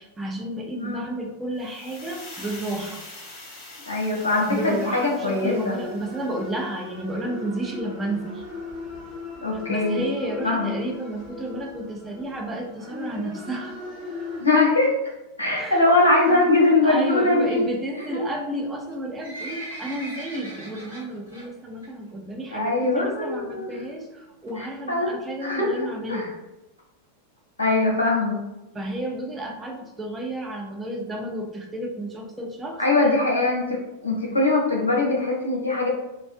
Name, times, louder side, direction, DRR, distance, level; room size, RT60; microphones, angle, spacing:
voice 1, 0.0-3.0 4.5-8.4 9.5-13.8 15.6-15.8 16.3-16.5 16.8-26.3 28.7-32.8, right 1 dB, 15° right, 1 dB, 0.4 m, -32 dB
voice 2, 0.7-1.0 3.9-5.7 9.4-10.0 10.4-10.7 14.4-14.9 15.4-17.7 18.1-18.2 22.5-23.7 24.6-25.1 25.4-25.7 26.1-26.3 27.6-28.4 32.8-33.6 34.0-35.9, left 2 dB, 75° left, -3 dB, 0.6 m, -21 dB
sound 1, 1.6-6.6, left 2 dB, 40° left, 0.7 m, -44 dB
sound 2, 4.7-14.5, left 3 dB, 30° right, 1.0 m, -39 dB
Livestock farm animals working animals, 18.8-21.5 21.8-22.1 22.4-22.5 23.2-23.3 23.6-23.7 23.8-23.9 24.5-24.7 25.3-25.4 25.6-25.7 25.9-26.0 26.2-26.3 26.8-26.9 27.4-27.5 27.9-28.0, right 1 dB, 80° right, 0.9 m, -39 dB
2.5 x 2.1 x 2.4 m, 0.98 s
figure-of-eight pair, 90°, 0 cm